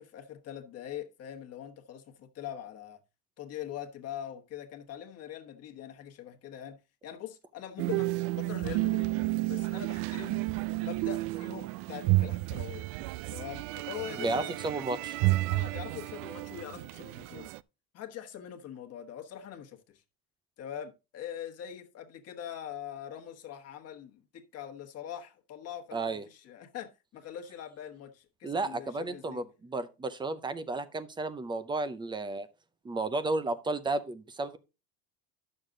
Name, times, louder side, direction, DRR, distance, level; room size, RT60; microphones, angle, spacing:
voice 1, 0.0-3.0 3.4-6.8 7.0-9.1 9.5-10.4 10.8-12.9 13.3-14.8 15.5-17.5 17.9-20.0 20.6-29.4, left 10 dB, 40° left, 1.4 m, -43 dB
sound 1, 7.8-17.6, right 20 dB, 80° right, 0.5 m, -31 dB
voice 2, 14.2-15.2 25.9-26.2 28.4-32.5 32.8-34.6, right 3 dB, 10° right, 0.5 m, -33 dB
11.0 x 6.7 x 3.7 m
cardioid pair, 160°, 40 cm